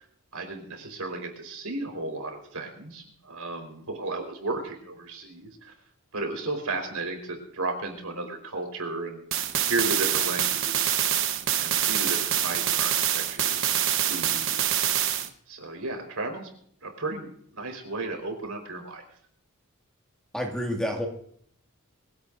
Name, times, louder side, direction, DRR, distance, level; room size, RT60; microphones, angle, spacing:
voice 1, 0.3-5.5 6.1-10.9 11.6-13.7 14.1-14.6 15.5-16.5 16.8-17.3 17.5-19.0, right 3 dB, 80° right, 4 dB, 4.4 m, -34 dB
sound 1, 9.3-15.3, right 10 dB, 65° right, 1.1 m, -25 dB
voice 2, 20.3-21.1, equal, 5° left, 1 dB, 2.2 m, -29 dB
23.0 x 16.5 x 2.6 m, 0.63 s
head